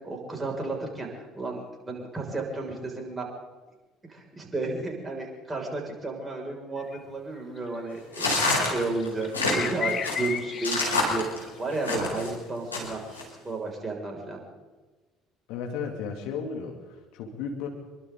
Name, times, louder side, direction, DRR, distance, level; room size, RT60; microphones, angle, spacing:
voice 1, 0.0-3.3 4.1-14.4, right 3 dB, 20° right, 0 dB, 6.6 m, -33 dB
sound 1, 6.8-7.0 7.4-7.6 9.0-11.7, left 7 dB, 40° left, 2.0 m, -33 dB
sound 2, 8.1-12.3 12.7-13.2, left 2 dB, 85° left, 4.7 m, -27 dB
voice 2, 15.5-17.7, left 6 dB, 60° left, 2 dB, 3.0 m, -34 dB
27.0 x 23.5 x 4.1 m, 1.2 s
figure-of-eight pair, 55°, 0 cm